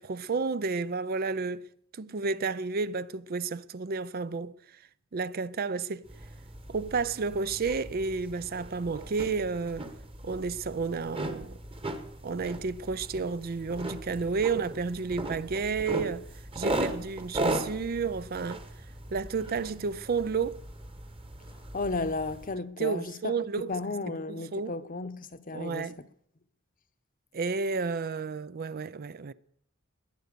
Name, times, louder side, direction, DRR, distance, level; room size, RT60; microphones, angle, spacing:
voice 1, 0.0-1.6 1.9-4.8 5.1-6.1 6.7-9.9 10.2-11.6 12.2-16.3 16.5-18.6 19.1-20.6 22.8-23.8 24.1-24.8 25.5-26.0 27.3-29.3, right 4 dB, 45° right, 0.5 m, -31 dB
sound 1, 6.1-22.5, right 1 dB, 25° right, 1.4 m, -38 dB
voice 2, 21.7-25.9, left 3 dB, 40° left, 0.9 m, -34 dB
21.0 x 8.0 x 6.8 m
head